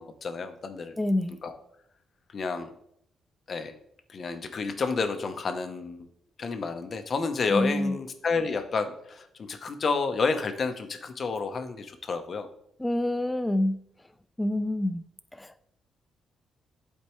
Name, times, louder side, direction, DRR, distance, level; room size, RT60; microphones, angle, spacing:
voice 1, 0.0-0.9 1.4-1.5 2.3-2.7 3.5-3.7 4.1-6.1 6.4-12.5, left 4 dB, 40° left, 8 dB, 0.7 m, -30 dB
voice 2, 1.0-1.4 7.5-8.0 12.8-13.8 14.4-15.0 15.4-15.5, left 1 dB, 10° left, 13 dB, 0.4 m, -27 dB
11.5 x 4.4 x 3.0 m, 0.72 s
cardioid pair, 145°, 0 cm